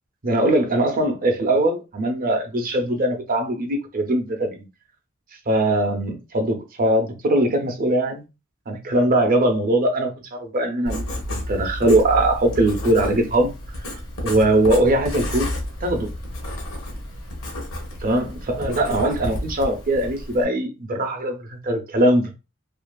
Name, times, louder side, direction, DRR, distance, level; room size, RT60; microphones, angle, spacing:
voice 1, 0.2-4.6 5.5-8.2 8.7-11.0 11.3-13.5 14.2-15.5 15.8-16.1 18.0-22.4, right 1 dB, 40° right, 0.5 m, -21 dB
Writing, 10.9-20.4, left 1 dB, 65° left, 0.8 m, -31 dB
2.7 x 2.5 x 2.2 m
head